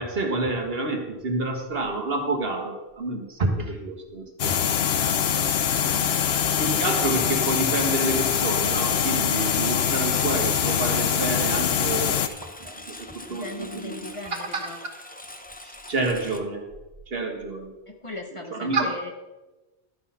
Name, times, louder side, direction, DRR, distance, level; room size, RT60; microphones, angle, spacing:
voice 1, 0.0-4.6 6.6-12.2 12.6-14.1 15.6-16.6 17.1-17.7 18.5-18.9, right 2 dB, 70° right, 3 dB, 1.6 m, -28 dB
sound 1, 4.4-12.3, left 8 dB, 80° left, 0.9 m, -23 dB
sound 2, 8.4-8.7 10.4-10.8 12.4-12.6 14.4-14.7, right 2 dB, 40° right, 1.6 m, -47 dB
Engine, 9.3-16.4, left 1 dB, 10° left, 0.5 m, -43 dB
voice 2, 13.3-14.8 17.9-19.1, left 2 dB, 30° left, 3 dB, 1.1 m, -38 dB
11.5 x 6.2 x 5.6 m, 1.1 s
omnidirectional pair, 1.0 m